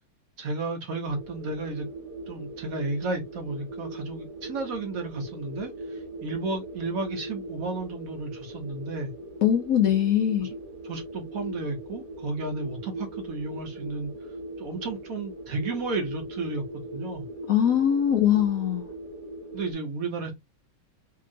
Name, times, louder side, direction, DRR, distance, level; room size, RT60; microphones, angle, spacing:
voice 1, 0.4-1.9 2.3-9.1 10.4-10.5 10.8-14.1 14.6-17.3 19.5-20.3, right 3 dB, 60° right, 1.0 m, -33 dB
sound 1, 1.0-19.7, right 1 dB, 35° right, 1.0 m, -40 dB
voice 2, 9.4-10.5 17.5-18.8, left 10 dB, 70° left, 0.8 m, -22 dB
2.9 x 2.7 x 2.4 m
omnidirectional pair, 1.9 m